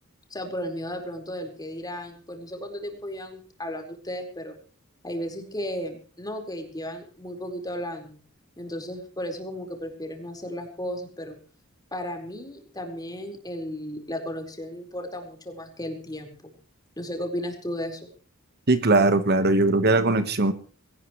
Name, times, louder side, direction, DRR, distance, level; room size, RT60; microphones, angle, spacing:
voice 1, 0.3-4.6 5.0-8.2 8.6-11.4 11.9-16.5 17.0-18.1, equal, 20° left, 3 dB, 4.6 m, -34 dB
voice 2, 18.7-20.5, right 2 dB, 50° right, 10 dB, 1.4 m, -20 dB
21.0 x 18.5 x 3.2 m, 0.41 s
head